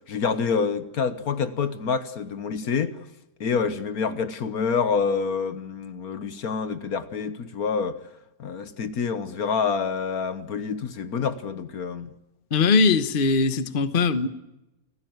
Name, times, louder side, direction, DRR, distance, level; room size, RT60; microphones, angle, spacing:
voice 1, 0.1-3.0 3.4-8.0 8.4-12.1, left 5 dB, 65° left, 1.5 m, -27 dB
voice 2, 12.5-14.3, left 4 dB, 35° left, 1.1 m, -20 dB
28.5 x 15.5 x 9.3 m
omnidirectional pair, 1.7 m